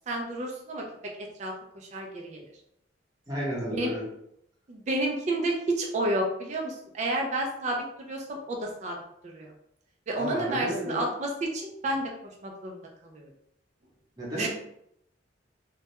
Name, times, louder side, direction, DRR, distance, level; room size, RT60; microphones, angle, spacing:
voice 1, 0.1-2.4 3.7-3.9 4.7-9.0 9.2-9.5 10.1-12.1 12.4-13.3 14.4-14.5, right 1 dB, 40° right, 1 dB, 0.3 m, -31 dB
voice 2, 3.3-4.0 10.2-11.1 14.2-14.5, equal, 20° right, -6 dB, 0.9 m, -32 dB
2.2 x 2.1 x 2.8 m, 0.74 s
head